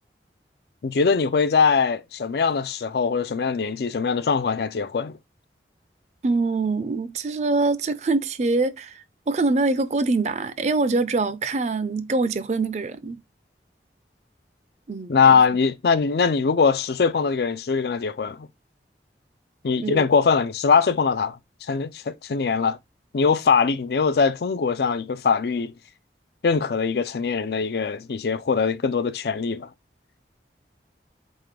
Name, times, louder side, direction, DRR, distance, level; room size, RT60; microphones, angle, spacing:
voice 1, 0.8-5.2 15.1-18.5 19.6-22.8 23.1-25.7 26.4-29.7, left 5 dB, 65° left, 0.4 m, -22 dB
voice 2, 6.2-13.2 14.9-15.4 19.8-20.0, right 3 dB, 40° right, 0.4 m, -24 dB
4.1 x 3.6 x 3.2 m
head